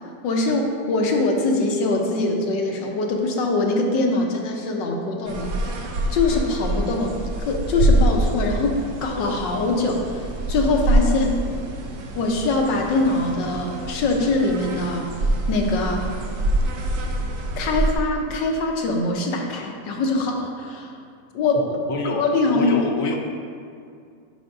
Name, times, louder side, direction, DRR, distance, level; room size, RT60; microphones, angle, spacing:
voice 1, 0.2-5.6 6.1-10.2 10.5-11.4 12.1-15.1 15.5-16.1 17.6-20.9 21.3-21.8 22.2-22.8, left 2 dB, 85° left, 1 dB, 1.6 m, -23 dB
sound 1, 5.3-17.9, right 1 dB, 75° right, 1.3 m, -25 dB
voice 2, 21.5-22.3 22.5-23.2, left 4 dB, 60° left, 1 dB, 1.0 m, -27 dB
12.0 x 5.0 x 2.6 m, 2.3 s
omnidirectional pair, 1.9 m